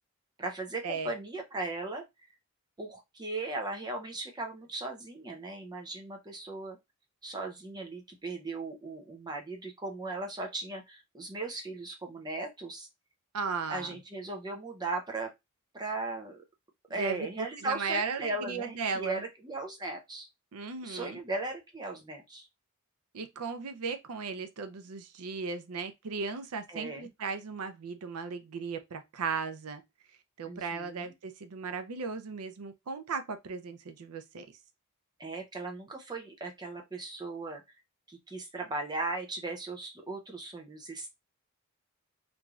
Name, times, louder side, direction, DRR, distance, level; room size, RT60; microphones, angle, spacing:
voice 1, 0.4-2.0 2.8-6.8 7.2-12.9 13.7-15.3 15.7-16.4 16.9-20.3 20.8-22.5 26.7-27.1 30.4-31.1 35.2-37.6 38.1-41.1, right 2 dB, 20° right, 0.6 m, -37 dB
voice 2, 13.3-14.0 16.9-19.2 20.5-21.2 23.1-29.8 30.4-34.5, right 5 dB, 80° right, 0.5 m, -36 dB
3.0 x 2.6 x 2.3 m
head